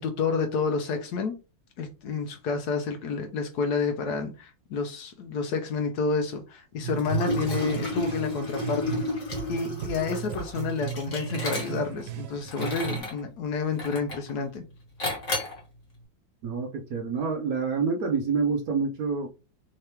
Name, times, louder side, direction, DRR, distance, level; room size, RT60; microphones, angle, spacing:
voice 1, 0.0-1.3 1.8-9.0 9.5-14.6, left 5 dB, 70° left, 1.0 m, -29 dB
sound 1, 6.8-9.1 9.3-13.0, right 9 dB, 85° right, 1.4 m, -36 dB
Liquid, 7.0-12.0 12.5-13.2 13.8-14.3 15.0-15.6, left 1 dB, 45° left, 1.8 m, -31 dB
voice 2, 16.4-19.3, right 5 dB, 70° right, 0.9 m, -27 dB
3.7 x 2.8 x 3.3 m
omnidirectional pair, 2.1 m